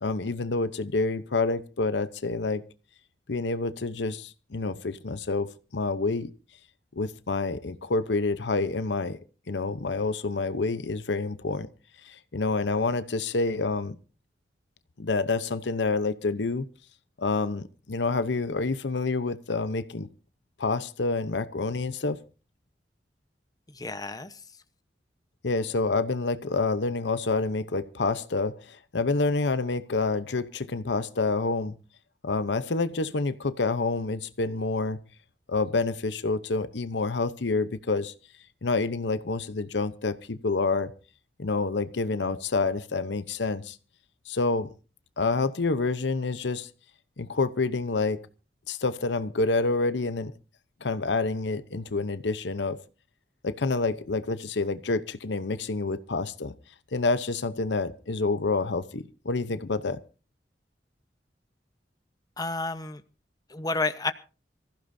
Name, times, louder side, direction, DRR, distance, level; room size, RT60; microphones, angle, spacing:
voice 1, 0.0-2.6 3.3-6.3 6.9-9.2 9.5-11.7 12.0-14.0 15.0-16.7 17.2-20.1 20.6-22.2 25.4-31.8 32.2-35.0 35.5-38.1 38.6-40.9 41.4-43.8 44.3-44.7 45.2-46.7 47.2-48.2 48.7-50.3 50.8-52.8 53.4-56.5 56.9-60.0, left 3 dB, 75° left, 13 dB, 0.8 m, -28 dB
voice 2, 23.7-24.4 62.4-63.0 63.5-64.1, left 3 dB, 20° left, 10 dB, 1.0 m, -30 dB
26.0 x 15.0 x 2.7 m, 0.35 s
head